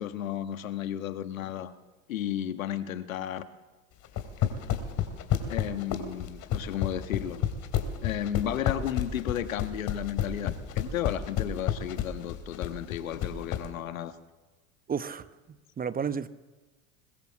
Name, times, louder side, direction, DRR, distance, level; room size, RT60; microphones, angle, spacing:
voice 1, 0.0-1.7 2.1-3.4 5.5-7.4 8.0-14.1, left 11 dB, 75° left, 11 dB, 1.5 m, -33 dB
sound 1, 4.0-13.6, left 11 dB, 45° left, 3.3 m, -29 dB
voice 2, 14.9-15.3 15.8-16.3, right 7 dB, 20° right, 14 dB, 1.0 m, -31 dB
22.0 x 20.0 x 7.7 m, 1.2 s
hypercardioid pair, 80°, 40 cm